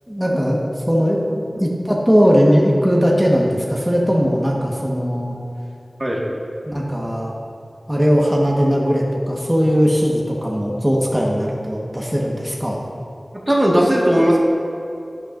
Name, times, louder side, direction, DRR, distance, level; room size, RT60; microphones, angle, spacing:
voice 1, 0.1-5.4 6.6-7.3 7.9-12.9, equal, 5° right, -3 dB, 1.3 m, -19 dB
voice 2, 13.5-14.4, equal, 25° right, -3 dB, 1.6 m, -16 dB
11.0 x 9.9 x 2.5 m, 2.7 s
wide cardioid pair, 65°, 0 cm